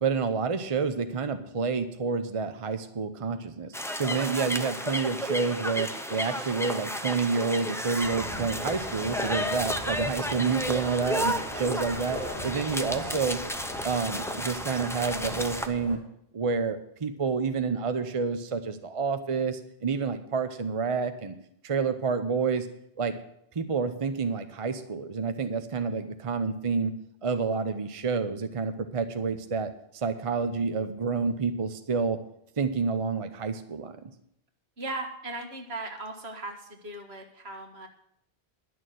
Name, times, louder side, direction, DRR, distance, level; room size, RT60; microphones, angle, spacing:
voice 1, 0.0-13.4 13.8-16.0 16.3-21.3 21.6-22.7 23.0-23.1 23.5-26.9 27.2-32.2 32.6-33.9, right 5 dB, 35° right, 9 dB, 0.8 m, -29 dB
sound 1, 3.7-15.7, equal, 5° left, 0.6 m, -33 dB
sound 2, 8.0-16.0, left 1 dB, 45° left, 3.0 m, -40 dB
voice 2, 34.8-37.9, right 2 dB, 75° right, 3 dB, 2.0 m, -38 dB
11.0 x 6.5 x 9.1 m, 0.71 s
omnidirectional pair, 1.1 m